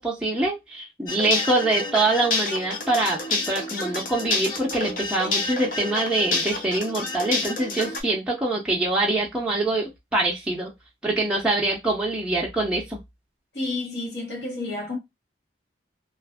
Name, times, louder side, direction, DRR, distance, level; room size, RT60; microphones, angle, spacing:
voice 1, 0.0-10.7 11.0-13.0, right 2 dB, 5° right, 0.5 m, -24 dB
sound 1, 1.1-8.0, left 3 dB, 45° left, 0.6 m, -29 dB
voice 2, 13.5-15.0, left 2 dB, 65° left, 1.1 m, -30 dB
2.5 x 2.5 x 2.2 m
head